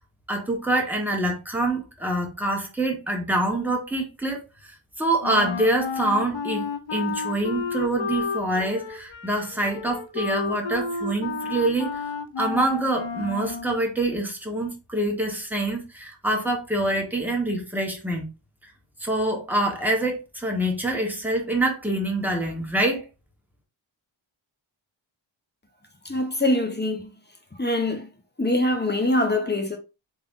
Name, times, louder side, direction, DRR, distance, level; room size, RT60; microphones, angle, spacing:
voice 1, 0.3-11.9 12.4-18.3 18.6-18.7 19.0-23.1, right 1 dB, 5° right, 1.2 m, -26 dB
Wind instrument woodwind instrument, 5.2-13.8, left 5 dB, 65° left, 0.6 m, -31 dB
voice 2, 26.0-27.1 27.5-28.1 28.4-29.8, left 1 dB, 20° left, 1.0 m, -24 dB
3.7 x 3.3 x 2.5 m
wide cardioid pair, 60°, 48 cm